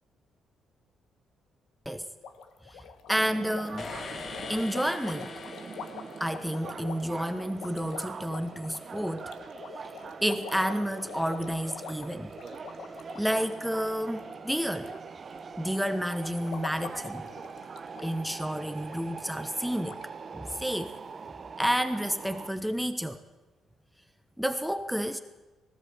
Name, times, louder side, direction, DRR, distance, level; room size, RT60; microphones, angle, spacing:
sound 1, 2.2-15.0 15.3-15.7 16.2-18.1 18.4-18.5 18.9-19.0 19.5-19.6 19.9-20.0, left 6 dB, 80° left, 1.6 m, -45 dB
voice 1, 3.1-3.9 4.5-5.4 6.2-9.3 10.2-12.3 13.1-14.9 15.6-17.3 18.0-20.0 20.3-21.0 21.6-23.2 24.4-25.2, equal, ahead, 9 dB, 1.0 m, -30 dB
sound 2, 3.2-22.5, right 5 dB, 40° right, 1.1 m, -43 dB
sound 3, 3.8-6.9, left 5 dB, 50° left, 1.4 m, -42 dB
19.0 x 17.5 x 8.1 m, 1.2 s
cardioid pair, 90°, 0 cm